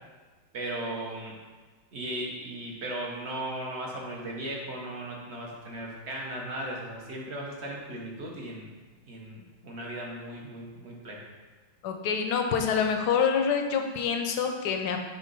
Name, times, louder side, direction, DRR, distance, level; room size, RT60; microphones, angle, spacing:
voice 1, 0.5-1.4 1.9-8.7 9.1-11.2, right 1 dB, 45° right, -2 dB, 0.9 m, -37 dB
voice 2, 11.8-15.0, left 6 dB, 70° left, 4 dB, 1.1 m, -26 dB
6.4 x 3.3 x 5.4 m, 1.3 s
omnidirectional pair, 2.2 m